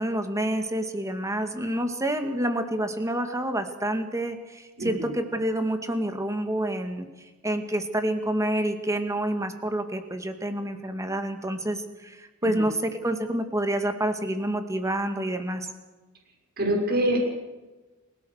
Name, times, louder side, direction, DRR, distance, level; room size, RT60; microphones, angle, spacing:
voice 1, 0.0-7.1 7.4-15.7, right 1 dB, 15° right, 7 dB, 2.2 m, -28 dB
voice 2, 4.8-5.1 12.6-12.7 16.6-17.2, right 1 dB, 45° right, 1 dB, 6.4 m, -25 dB
29.0 x 17.5 x 6.6 m, 1.2 s
head